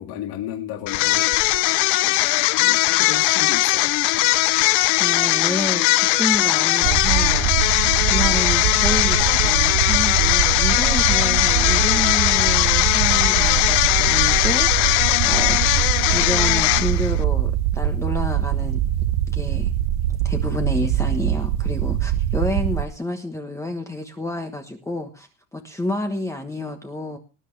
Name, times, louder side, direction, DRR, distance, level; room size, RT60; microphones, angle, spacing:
voice 1, 0.0-1.3 2.0-2.2 2.6-3.9, left 11 dB, 60° left, 2.2 m, -33 dB
sound 1, 0.9-17.2, left 20 dB, 80° left, 0.7 m, -19 dB
voice 2, 5.0-7.5 8.0-15.8 16.1-18.8 19.3-19.7 20.2-27.2, left 1 dB, 5° left, 1.2 m, -29 dB
sound 2, 6.8-22.9, right 11 dB, 65° right, 1.0 m, -23 dB
19.0 x 11.0 x 3.3 m
cardioid pair, 155°, 41 cm